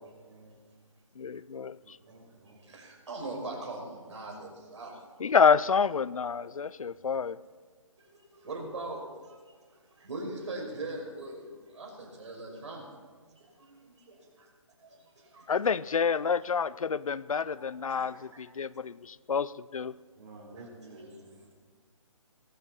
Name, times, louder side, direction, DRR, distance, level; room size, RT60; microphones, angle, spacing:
voice 1, 1.2-2.0 5.2-7.4 15.5-19.9, left 6 dB, 80° left, 20 dB, 0.5 m, -28 dB
voice 2, 1.8-2.6 20.2-21.2, right 2 dB, 30° right, -1 dB, 4.5 m, -51 dB
voice 3, 2.6-5.0 8.1-9.6 9.9-12.9 13.4-14.5 14.8-15.5 17.9-18.4 20.6-21.2, right 2 dB, 60° right, 0 dB, 5.4 m, -41 dB
18.5 x 14.5 x 4.4 m, 1.5 s
figure-of-eight pair, 150°, 17 cm